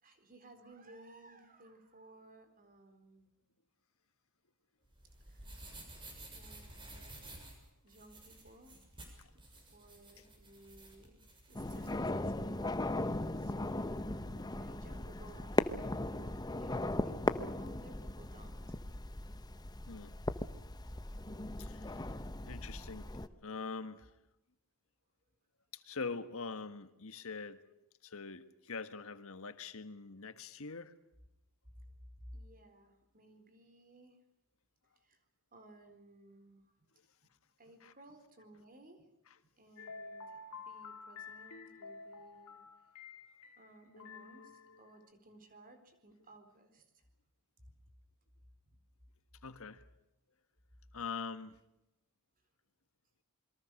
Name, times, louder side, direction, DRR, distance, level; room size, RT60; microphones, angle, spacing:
voice 1, 0.0-3.3 5.3-5.6 6.2-7.4 7.8-8.8 9.2-9.3 9.5-11.2 11.5-12.7 13.0-18.8 22.2-22.3 32.2-34.2 35.0-35.2 35.5-36.7 37.6-39.1 39.4-42.6 43.6-47.0 47.6-47.8 48.7-48.8, right 1 dB, 40° right, 6 dB, 4.2 m, -58 dB
sound 1, 4.9-11.9, right 2 dB, 25° right, 6.7 m, -53 dB
sound 2, 11.5-23.3, left 2 dB, 20° left, 0.8 m, -38 dB
voice 2, 21.2-22.2 22.5-23.1 23.4-24.1 25.7-27.6 28.0-30.9 37.8-37.9 49.4-49.8 50.9-51.6, left 4 dB, 65° left, 11 dB, 1.5 m, -44 dB
sound 3, 39.8-45.1, left 4 dB, 85° left, 2.5 m, -50 dB
27.5 x 22.5 x 6.5 m, 0.89 s
head